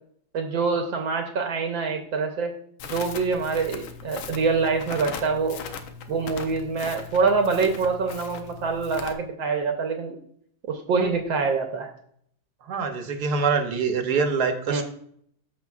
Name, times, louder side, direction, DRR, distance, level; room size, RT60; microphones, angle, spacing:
voice 1, 0.3-2.5 2.9-5.6 6.1-10.2 10.7-11.9 14.7-14.8, right 4 dB, 75° right, 4 dB, 1.5 m, -25 dB
Crackle, 2.8-9.1, left 6 dB, 85° left, 1.7 m, -39 dB
voice 2, 12.6-14.8, right 5 dB, 60° right, 6 dB, 1.3 m, -24 dB
13.5 x 6.0 x 2.4 m, 0.66 s
omnidirectional pair, 2.1 m